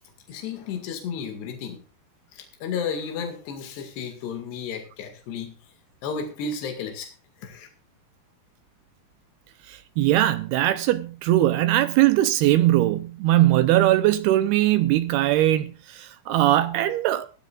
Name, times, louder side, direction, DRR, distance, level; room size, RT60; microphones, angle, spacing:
voice 1, 0.3-1.8 2.3-5.5 6.0-7.1 7.4-7.7, left 6 dB, 85° left, 4.2 m, -33 dB
voice 2, 9.7-17.3, right 14 dB, 80° right, 2.7 m, -20 dB
19.5 x 12.5 x 2.5 m
omnidirectional pair, 4.6 m